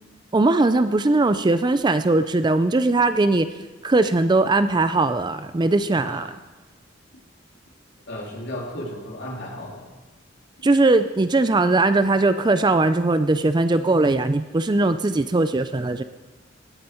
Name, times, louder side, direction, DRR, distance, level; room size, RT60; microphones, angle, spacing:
voice 1, 0.3-3.5 3.8-6.3 10.6-16.0, right 2 dB, 25° right, 11 dB, 0.4 m, -20 dB
voice 2, 8.1-9.9, left 1 dB, 60° left, -1 dB, 2.7 m, -34 dB
18.0 x 9.1 x 4.4 m, 1.2 s
head